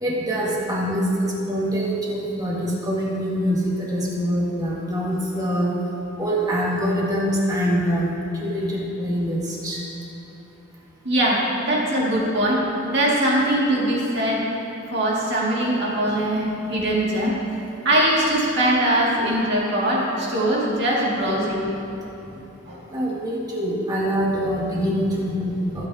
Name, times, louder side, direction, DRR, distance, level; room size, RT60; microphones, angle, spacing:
voice 1, 0.0-5.8 6.2-8.1 8.4-9.8 22.9-25.9, equal, 20° right, -4 dB, 1.9 m, -24 dB
voice 2, 11.0-14.4 14.9-17.3 17.8-21.7 22.7-22.8, right 1 dB, 55° right, -5 dB, 2.3 m, -21 dB
22.0 x 8.9 x 2.8 m, 2.8 s
head